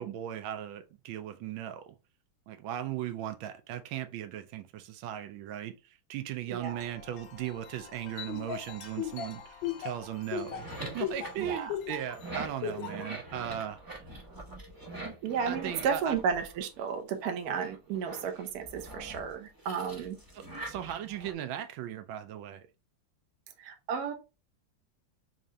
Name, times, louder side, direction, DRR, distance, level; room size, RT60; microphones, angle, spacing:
voice 1, 0.0-1.9 2.5-5.8 6.1-13.8 15.5-16.2 20.3-22.6, right 11 dB, 85° right, 1.3 m, -37 dB
Wind chime, 6.5-13.0, left 7 dB, 60° left, 1.0 m, -51 dB
voice 2, 6.5-6.8 11.4-11.7 15.2-20.2 23.6-24.1, right 6 dB, 65° right, 1.0 m, -33 dB
Laughter, 8.3-12.1 12.6-13.1, left 9 dB, 80° left, 1.4 m, -35 dB
sound 1, 10.4-17.0 17.4-21.3, right 2 dB, 30° right, 0.4 m, -44 dB
3.6 x 2.7 x 3.2 m
omnidirectional pair, 2.1 m